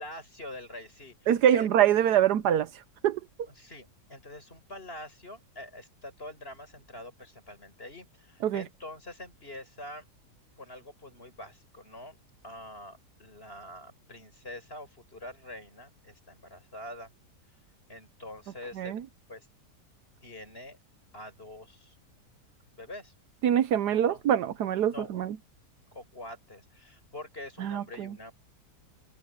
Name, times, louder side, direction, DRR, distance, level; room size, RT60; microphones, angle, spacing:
voice 1, 0.0-1.7 3.5-10.1 10.6-12.2 12.4-17.1 17.9-19.0 19.3-19.5 20.2-20.8 21.1-22.0 22.7-23.1 23.9-24.2 24.9-25.2 25.9-28.3, left 1 dB, 35° left, 7.4 m, -45 dB
voice 2, 1.3-2.7 3.0-3.2 8.4-8.6 18.8-19.0 23.4-25.4 27.6-28.1, right 10 dB, 75° right, 1.3 m, -24 dB
omnidirectional pair, 1.8 m